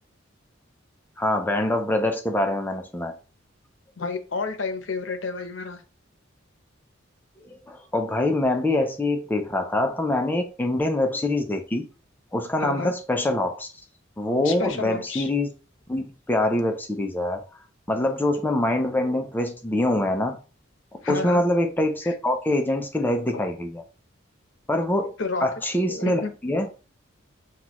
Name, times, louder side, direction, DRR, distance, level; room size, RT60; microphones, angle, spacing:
voice 1, 1.2-3.1 7.4-11.9 12.3-13.7 14.2-15.5 15.9-17.4 17.9-20.4 20.9-23.8 24.7-25.1 25.4-26.7, left 1 dB, 10° left, 0.4 m, -24 dB
voice 2, 4.0-5.8 12.6-12.9 14.4-15.3 21.0-21.4 22.0-22.1 25.2-25.5 25.9-26.3, left 4 dB, 65° left, 0.7 m, -30 dB
5.8 x 2.3 x 3.0 m
head